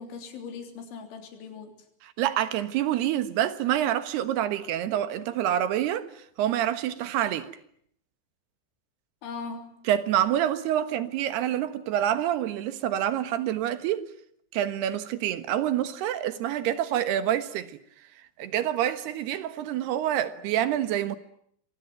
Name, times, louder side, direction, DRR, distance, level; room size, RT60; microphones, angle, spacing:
voice 1, 0.0-1.7 9.2-9.9, left 5 dB, 85° left, 5.8 m, -39 dB
voice 2, 2.0-7.5 9.8-14.1 14.5-17.8 18.4-21.2, right 11 dB, 70° right, 3.2 m, -27 dB
27.5 x 23.5 x 9.2 m
omnidirectional pair, 5.2 m